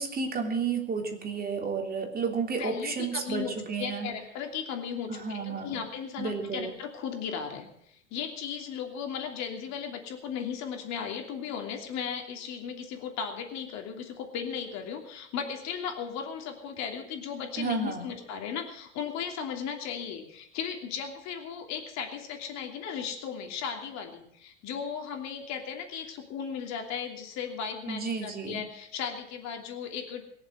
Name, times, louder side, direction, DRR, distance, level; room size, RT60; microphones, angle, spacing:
voice 1, 0.0-4.1 5.1-5.8 6.2-6.8 17.6-18.1 27.9-28.7, right 5 dB, 25° right, 3 dB, 3.3 m, -32 dB
voice 2, 2.6-3.5 3.8-30.2, left 7 dB, 50° left, 3 dB, 3.0 m, -36 dB
22.0 x 7.4 x 7.8 m, 0.73 s
hypercardioid pair, 80°, 35 cm